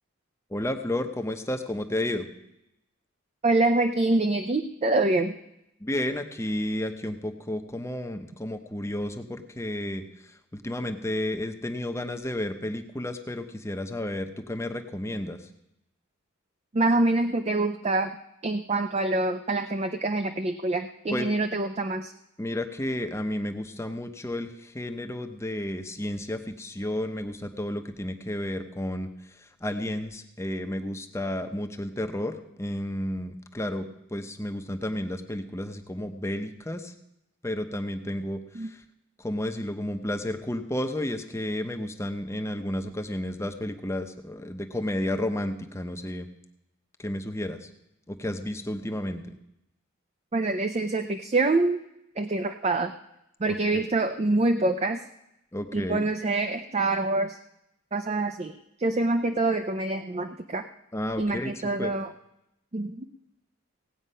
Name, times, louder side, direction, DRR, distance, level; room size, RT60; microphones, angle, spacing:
voice 1, 0.5-2.3 5.8-10.0 10.5-15.4 21.1-21.3 22.4-29.1 29.6-33.9 34.1-36.9 37.4-38.7 39.2-46.3 47.0-47.7 48.1-49.4 55.5-56.0 60.9-61.5 61.8-61.9, left 1 dB, 15° left, 7 dB, 0.8 m, -32 dB
voice 2, 3.4-5.4 16.7-18.2 18.4-22.1 38.5-38.7 50.3-51.8 52.2-53.0 53.4-55.0 55.7-57.4 57.9-60.7 61.2-62.1 62.7-63.1, right 2 dB, 30° right, 7 dB, 0.5 m, -26 dB
17.5 x 8.7 x 5.5 m, 0.84 s
head